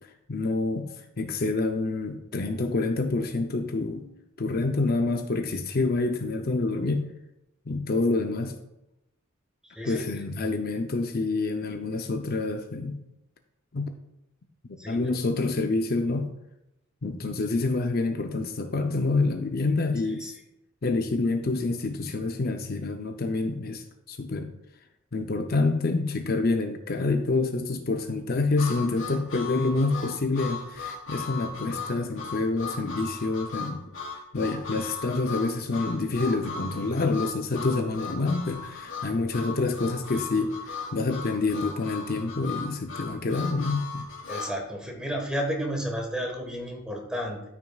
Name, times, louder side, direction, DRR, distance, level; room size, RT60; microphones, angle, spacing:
voice 1, 0.3-4.1 4.4-7.1 7.7-8.5 9.9-13.0 13.7-13.9 14.7-16.3 17.0-20.3 20.8-24.5 25.1-33.8 34.3-44.1, left 3 dB, 50° left, 5 dB, 0.6 m, -27 dB
voice 2, 9.7-10.1 14.8-15.0 20.2-20.3 44.3-47.4, equal, 5° right, 1 dB, 1.4 m, -32 dB
Harmonica, 28.6-44.5, left 4 dB, 75° left, 3.0 m, -37 dB
13.0 x 6.2 x 2.4 m, 0.90 s
head